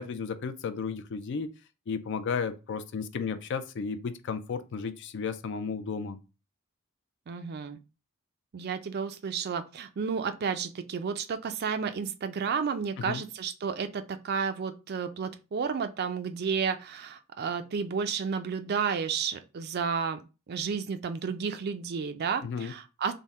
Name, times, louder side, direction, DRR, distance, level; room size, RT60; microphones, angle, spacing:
voice 1, 0.0-1.5 1.9-6.2 13.0-13.2 22.4-22.7, left 5 dB, 55° left, 0.4 m, -33 dB
voice 2, 7.3-7.8 8.5-20.2 20.5-23.1, right 6 dB, 45° right, 0.4 m, -32 dB
3.5 x 2.1 x 4.1 m
head